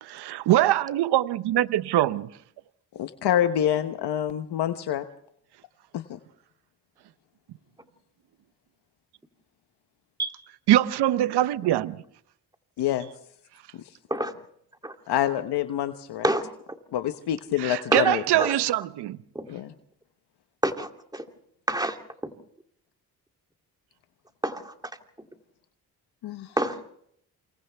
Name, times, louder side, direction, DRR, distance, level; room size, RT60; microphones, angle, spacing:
voice 1, 0.0-2.3 10.7-12.0 17.6-19.2, right 13 dB, 80° right, 0.8 m, -23 dB
voice 2, 2.9-5.0 5.9-6.2 12.8-13.1 13.7-13.9 15.1-16.3 16.9-18.2 19.5-19.7 26.2-26.6, left 11 dB, 80° left, 1.1 m, -27 dB
voice 3, 20.6-21.2 21.7-22.0 22.2-22.3 24.4-24.6 26.6-26.8, right 1 dB, 10° right, 2.8 m, -27 dB
28.5 x 27.5 x 3.4 m
cardioid pair, 70°, 39 cm